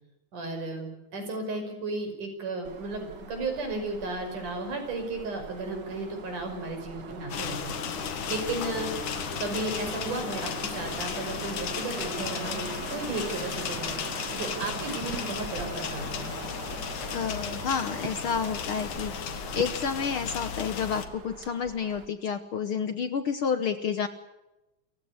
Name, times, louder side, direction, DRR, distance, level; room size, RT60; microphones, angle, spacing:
voice 1, 0.3-7.8 8.3-8.9 9.4-13.9 14.3-16.3, right 2 dB, 90° right, 5 dB, 7.1 m, -34 dB
sound 1, 2.6-22.1, right 5 dB, 40° right, 1.9 m, -41 dB
sound 2, 7.3-21.1, left 8 dB, 80° left, 3.3 m, -35 dB
voice 2, 17.1-24.1, left 6 dB, 60° left, 11 dB, 1.5 m, -30 dB
28.5 x 16.0 x 8.4 m, 0.96 s
omnidirectional pair, 3.5 m